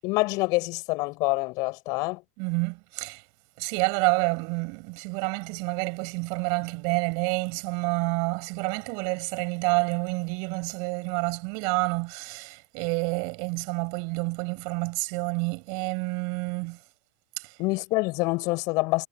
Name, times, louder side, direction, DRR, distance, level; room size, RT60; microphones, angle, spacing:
voice 1, 0.0-2.2 17.6-19.1, left 24 dB, 50° left, 7.5 m, -26 dB
voice 2, 2.4-3.2 3.6-16.8 17.4-17.5, right 34 dB, 55° right, 6.5 m, -28 dB
hypercardioid pair, 120°, 8 cm